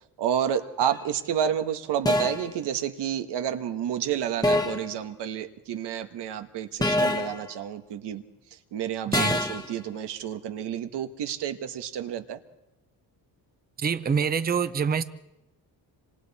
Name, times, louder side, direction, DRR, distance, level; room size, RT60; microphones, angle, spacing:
voice 1, 0.2-8.2 8.5-12.4, right 9 dB, 85° right, 1.5 m, -30 dB
sound 1, 0.8-1.1 2.1-2.5 4.4-4.9 6.8-7.4 9.1-9.7, left 1 dB, 10° left, 1.2 m, -25 dB
voice 2, 13.8-15.0, right 6 dB, 25° right, 0.8 m, -25 dB
27.0 x 26.5 x 4.3 m
cardioid pair, 165°, 40 cm